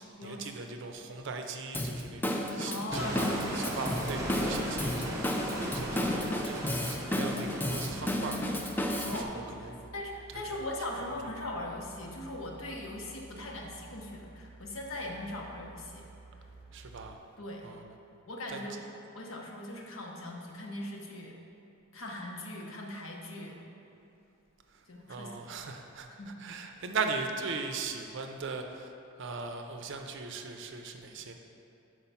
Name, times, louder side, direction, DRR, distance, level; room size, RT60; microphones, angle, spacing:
voice 1, 0.0-5.5 5.7-8.4 9.1-9.9 10.3-10.6 16.7-17.2 17.6-17.9 18.5-18.6 24.7-28.9 29.2-31.3, right 4 dB, 60° right, 5 dB, 0.5 m, -39 dB
Drum kit / Drum, 1.7-9.2, left 1 dB, 10° left, 0.3 m, -33 dB
voice 2, 2.7-4.0 5.6-6.3 8.9-16.1 17.4-17.7 18.3-18.8 19.1-21.3 21.9-23.6 24.9-25.3 26.2-26.4, left 1 dB, 70° left, 0 dB, 0.9 m, -40 dB
sound 1, 2.9-9.2, right 1 dB, 15° right, 0.8 m, -37 dB
sound 2, 7.8-17.2, right 2 dB, 30° left, 0.9 m, -52 dB
5.8 x 4.8 x 5.5 m, 2.8 s
head